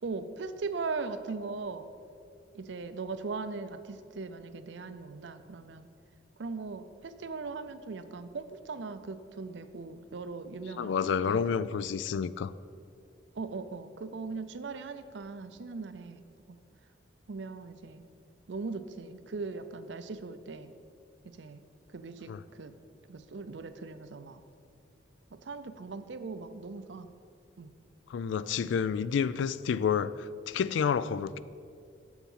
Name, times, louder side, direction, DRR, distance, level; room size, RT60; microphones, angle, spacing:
voice 1, 0.0-1.9 2.5-5.9 6.4-10.9 11.3-11.6 13.4-16.3 17.3-18.0 18.5-20.7 21.2-21.6 21.9-22.7 23.1-24.4 25.3-27.1 27.6-27.7, right 4 dB, 75° right, 0.5 m, -39 dB
voice 2, 10.8-12.5 22.3-22.4 28.1-31.4, left 7 dB, 75° left, 0.3 m, -29 dB
7.1 x 7.1 x 5.5 m
head